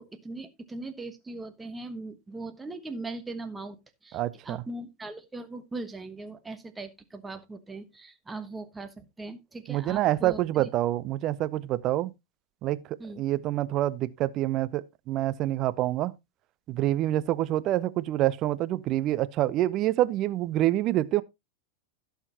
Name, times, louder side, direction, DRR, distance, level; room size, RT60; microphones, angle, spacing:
voice 1, 0.0-3.8 4.0-10.7 13.0-13.2, right 2 dB, 10° right, 1.3 m, -40 dB
voice 2, 4.1-4.6 9.7-12.1 12.6-12.8 13.2-16.2 16.7-21.2, right 14 dB, 35° right, 0.6 m, -27 dB
16.5 x 5.8 x 2.9 m
figure-of-eight pair, 90°, 0 cm